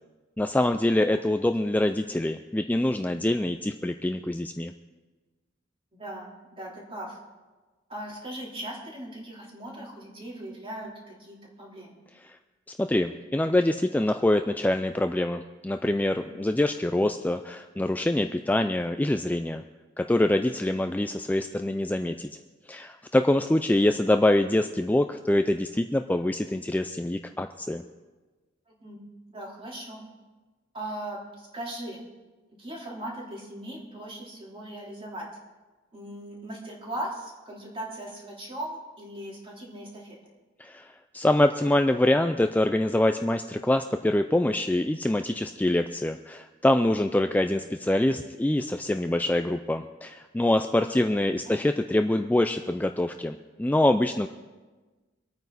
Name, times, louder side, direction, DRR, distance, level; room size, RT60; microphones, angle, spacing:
voice 1, 0.4-4.7 12.2-12.4 12.8-19.6 20.0-22.3 22.7-27.8 40.6-54.3, left 1 dB, 10° left, 7 dB, 0.3 m, -25 dB
voice 2, 5.9-7.2 7.9-11.9 28.7-29.0 29.3-30.0 30.7-32.0 32.6-35.3 35.9-40.2 50.8-50.9 51.4-51.5, right 1 dB, 30° right, -4 dB, 3.4 m, -39 dB
24.5 x 9.2 x 4.1 m, 1.3 s
head